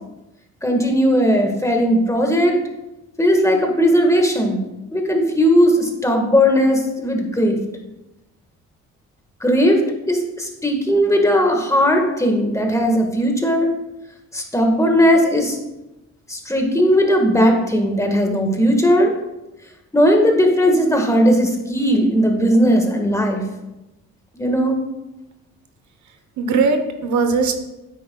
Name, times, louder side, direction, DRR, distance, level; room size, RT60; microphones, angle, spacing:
voice 1, 0.6-2.6 3.2-4.6 4.9-7.6 9.4-13.7 14.3-15.6 16.3-19.1 19.9-23.4 24.3-24.8, equal, 10° left, 2 dB, 1.6 m, -17 dB
voice 2, 26.0-27.6, right 4 dB, 70° right, 6 dB, 1.0 m, -20 dB
9.6 x 8.5 x 2.3 m, 0.97 s
cardioid pair, 90°, 30 cm